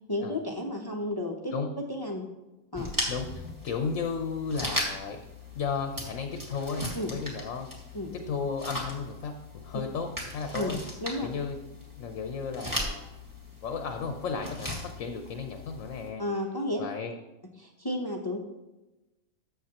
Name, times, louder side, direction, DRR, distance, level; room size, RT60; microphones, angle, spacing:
voice 1, 0.1-1.5 1.9-2.2 2.7-2.9 6.9-7.1 7.9-8.1 10.5-10.7 11.0-11.3 16.2-16.9 17.6-18.4, left 1 dB, 20° left, 2 dB, 0.7 m, -32 dB
sound 1, 2.7-16.1, left 1 dB, 15° right, 1.7 m, -38 dB
voice 2, 3.1-5.2 5.5-7.7 8.1-10.8 11.2-13.1 13.6-16.2 16.8-17.2, left 5 dB, 65° left, 5 dB, 1.0 m, -34 dB
12.5 x 6.9 x 2.9 m, 1.0 s
omnidirectional pair, 1.6 m